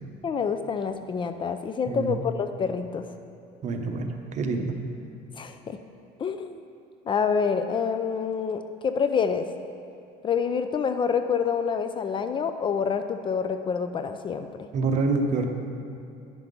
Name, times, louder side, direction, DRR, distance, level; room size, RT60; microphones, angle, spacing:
voice 1, 0.2-3.1 5.4-5.8 6.2-6.6 7.1-9.5 10.2-14.7, left 6 dB, 30° left, 9 dB, 0.4 m, -27 dB
voice 2, 1.9-2.2 3.6-4.7 14.7-15.5, right 3 dB, 45° right, 4 dB, 0.9 m, -26 dB
9.9 x 5.8 x 5.3 m, 2.6 s
cardioid pair, 125°, 16 cm